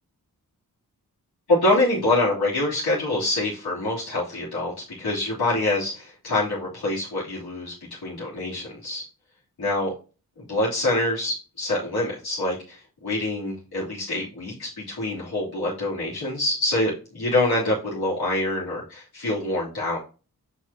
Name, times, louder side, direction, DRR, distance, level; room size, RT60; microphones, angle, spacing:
voice 1, 1.5-7.7 8.0-9.0 9.6-9.9 10.4-20.0, left 2 dB, 85° left, -9 dB, 3.3 m, -25 dB
7.4 x 4.9 x 2.9 m, 0.35 s
cardioid pair, 50°, 37 cm